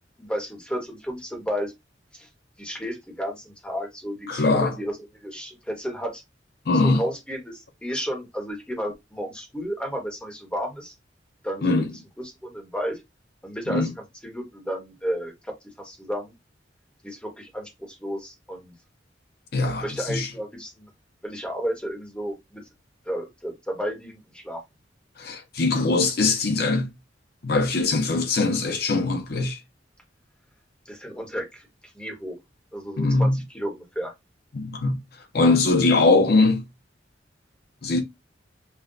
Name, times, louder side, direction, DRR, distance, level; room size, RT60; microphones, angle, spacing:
voice 1, 0.2-1.7 2.1-2.3 2.6-6.2 6.7-10.9 11.4-11.9 12.2-13.0 13.4-13.9 14.2-15.5 15.8-16.3 17.0-18.7 19.8-20.9 21.2-22.6 23.1-24.6 30.8-31.7 31.9-32.4 32.7-34.1, equal, 5° left, 1.1 m, -32 dB
voice 2, 4.3-4.7 6.7-7.0 11.6-11.9 13.7-13.9 19.5-20.3 25.2-26.9 27.4-29.6 33.0-33.4 34.5-35.0 35.3-36.6 37.8-38.0, left 3 dB, 60° left, 0.7 m, -21 dB
5.4 x 2.3 x 2.6 m
head